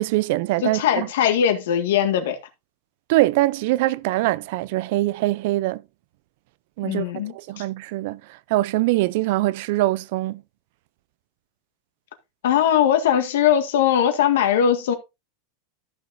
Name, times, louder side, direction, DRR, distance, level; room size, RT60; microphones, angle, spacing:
voice 1, 0.0-0.8 3.1-5.8 6.8-10.4, right 18 dB, 50° right, 0.4 m, -23 dB
voice 2, 0.6-2.4 6.8-7.6 12.4-14.9, left 9 dB, 75° left, 1.7 m, -20 dB
14.0 x 6.3 x 2.6 m
supercardioid pair, 175°, 0 cm